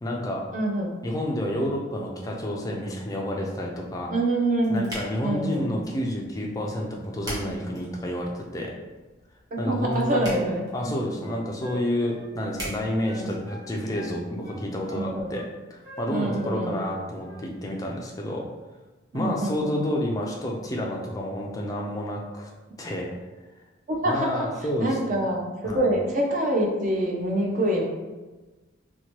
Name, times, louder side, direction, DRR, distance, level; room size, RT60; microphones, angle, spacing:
voice 1, 0.0-0.4 1.0-4.1 4.7-8.7 9.6-10.3 10.7-15.4 15.7-18.5 19.1-22.5 22.8-23.1 24.1-25.2 25.6-25.8, left 1 dB, 15° left, -1 dB, 0.3 m, -29 dB
voice 2, 0.5-1.0 4.1-4.9 5.2-5.8 9.5-10.6 13.1-13.4 14.9-15.3 16.1-16.8 19.1-19.7 23.9-24.5 24.8-27.8, right 1 dB, 40° right, -1 dB, 0.5 m, -26 dB
sound 1, 4.1-14.1, equal, 20° right, 0.8 m, -43 dB
sound 2, 10.7-11.0 11.2-12.8 13.0-14.2 14.4-15.5 15.8-16.9 17.2-17.5, right 1 dB, 85° right, 1.5 m, -44 dB
2.8 x 2.2 x 2.9 m, 1.2 s
head